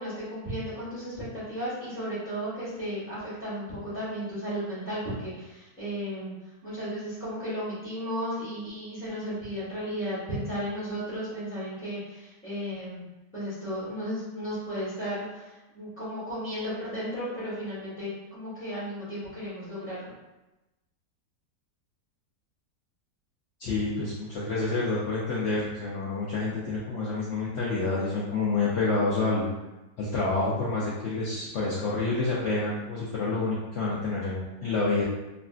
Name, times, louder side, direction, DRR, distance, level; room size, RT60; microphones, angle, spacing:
voice 1, 0.0-6.3 6.6-13.1 13.3-20.1, equal, 10° left, -10 dB, 0.9 m, -34 dB
voice 2, 23.6-29.4 30.0-35.0, left 3 dB, 75° left, -7 dB, 0.7 m, -28 dB
3.2 x 2.5 x 2.3 m, 1.0 s
omnidirectional pair, 1.8 m